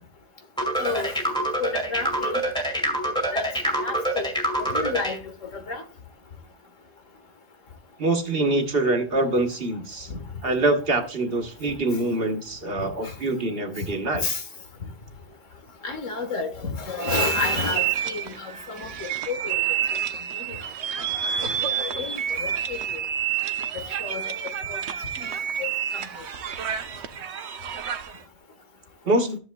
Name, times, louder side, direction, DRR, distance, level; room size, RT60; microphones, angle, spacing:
sound 1, 0.6-5.2, right 1 dB, 5° left, 2.2 m, -26 dB
voice 1, 0.8-1.2 1.6-2.4 3.3-4.3 4.6-5.8 10.1-10.2 13.0-13.1 14.2-14.4 15.8-19.6 20.4-20.6 21.2-22.8 23.7-24.8 25.2-25.3 25.6-25.7 25.9-26.0, left 4 dB, 80° left, 1.7 m, -31 dB
voice 2, 8.0-10.1 10.4-14.2 29.1-29.4, right 2 dB, 50° right, 1.3 m, -24 dB
sound 2, 17.0-28.2, right 9 dB, 65° right, 0.9 m, -29 dB
13.5 x 7.2 x 2.2 m
omnidirectional pair, 1.3 m